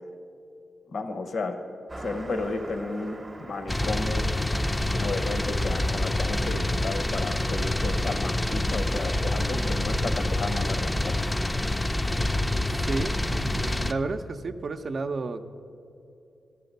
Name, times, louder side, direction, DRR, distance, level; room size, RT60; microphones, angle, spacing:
voice 1, 0.9-1.6 2.0-4.3 4.9-11.2, left 3 dB, 70° left, 7 dB, 0.8 m, -33 dB
Car passing by, 1.9-7.7, right 1 dB, 30° right, 0.8 m, -44 dB
sound 1, 3.7-13.9, left 1 dB, 15° left, 0.4 m, -27 dB
voice 2, 12.7-15.5, right 3 dB, 55° right, 8 dB, 0.5 m, -32 dB
13.5 x 5.7 x 5.3 m, 2.7 s
supercardioid pair, 50°, 0 cm